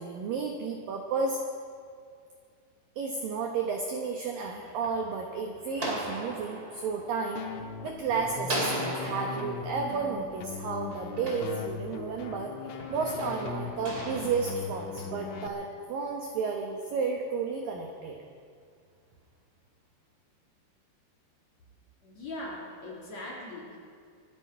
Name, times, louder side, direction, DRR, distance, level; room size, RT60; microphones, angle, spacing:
voice 1, 0.0-1.4 3.0-7.4 7.8-18.2, right 4 dB, 85° right, 2 dB, 1.9 m, -32 dB
sound 1, 4.3-8.0 8.4-12.2 12.8-15.5, right 1 dB, 35° right, 1.7 m, -38 dB
sound 2, 7.4-15.5, left 6 dB, 80° left, 3.4 m, -39 dB
voice 2, 22.0-23.8, left 1 dB, 40° left, -4 dB, 3.1 m, -40 dB
25.0 x 11.5 x 4.6 m, 2.2 s
omnidirectional pair, 5.6 m